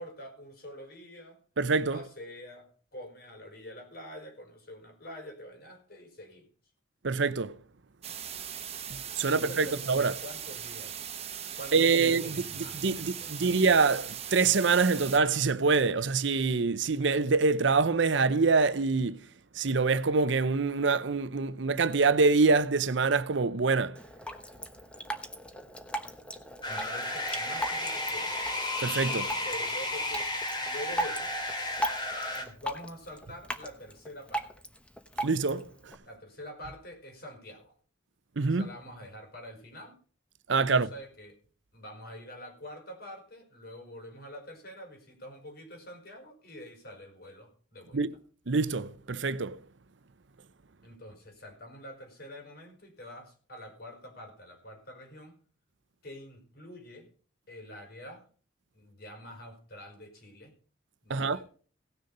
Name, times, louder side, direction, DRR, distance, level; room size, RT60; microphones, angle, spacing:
voice 1, 0.0-1.4 1.9-6.5 9.2-11.2 11.6-13.6 26.7-28.3 29.4-30.3 30.6-31.3 32.3-34.6 36.0-37.8 38.4-40.0 40.7-41.4 41.7-48.0 50.8-55.3 56.0-57.1 57.5-58.2 58.7-60.5 61.0-61.5, equal, 55° left, 4.7 m, -46 dB
voice 2, 1.6-2.0 7.0-7.5 9.2-10.1 11.7-12.2 12.8-19.2 19.6-24.0 28.8-29.3 35.2-35.6 38.4-38.7 40.5-40.9 47.9-48.1 48.5-49.6 61.1-61.4, right 4 dB, 70° right, 0.7 m, -25 dB
sound 1, 8.0-15.2, right 9 dB, 35° right, 1.2 m, -40 dB
Drip, 24.0-36.0, equal, 5° left, 1.0 m, -39 dB
sound 2, 26.6-32.5, left 1 dB, 25° left, 2.7 m, -33 dB
17.5 x 6.6 x 5.4 m
head